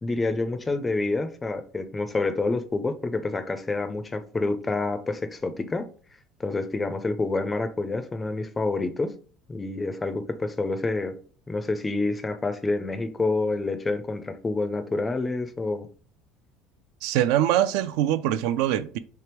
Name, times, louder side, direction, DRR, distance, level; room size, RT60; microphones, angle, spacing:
voice 1, 0.0-5.9 6.4-9.1 9.5-11.2 11.5-15.9, left 3 dB, 10° left, 0.4 m, -28 dB
voice 2, 17.0-19.0, right 12 dB, 70° right, 0.3 m, -23 dB
3.3 x 3.3 x 4.4 m
cardioid pair, 175°, 0 cm